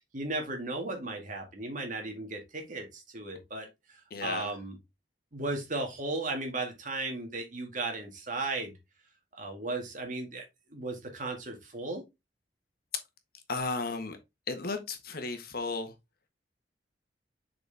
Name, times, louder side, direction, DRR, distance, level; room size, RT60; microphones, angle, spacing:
voice 1, 0.1-4.8 5.3-8.7 9.3-10.5 10.7-12.0, right 2 dB, 45° right, 2.0 m, -36 dB
voice 2, 4.1-4.5 13.5-14.2 14.5-15.9, left 3 dB, 60° left, 1.3 m, -34 dB
6.7 x 4.3 x 3.4 m
head